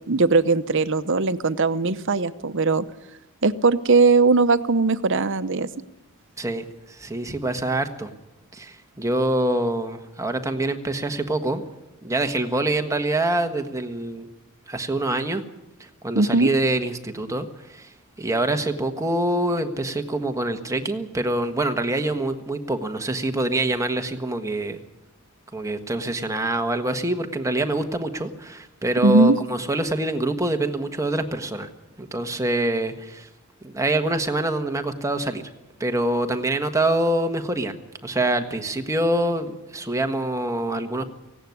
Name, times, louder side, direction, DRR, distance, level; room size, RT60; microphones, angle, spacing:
voice 1, 0.1-2.8 3.4-5.7 16.1-16.5 29.0-29.4, right 3 dB, 60° right, 13 dB, 0.8 m, -19 dB
voice 2, 6.4-8.1 8.5-11.6 12.0-14.3 14.7-15.4 16.0-17.9 18.2-24.8 25.5-31.7 32.0-33.3 33.6-35.4 35.8-37.7 38.0-41.0, right 1 dB, 15° right, 6 dB, 1.4 m, -25 dB
18.0 x 16.5 x 9.5 m, 0.95 s
head